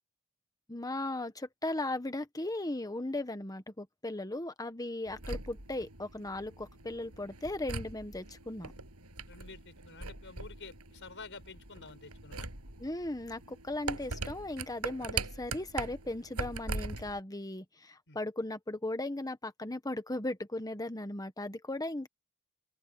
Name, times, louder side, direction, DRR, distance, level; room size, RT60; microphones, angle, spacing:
voice 1, 0.7-8.7 12.8-22.1, left 2 dB, 15° left, 1.4 m, -37 dB
sound 1, 5.1-17.2, right 3 dB, 85° right, 7.6 m, -41 dB
voice 2, 9.3-12.5 18.1-18.2, left 4 dB, 55° left, 6.1 m, -49 dB
open air
head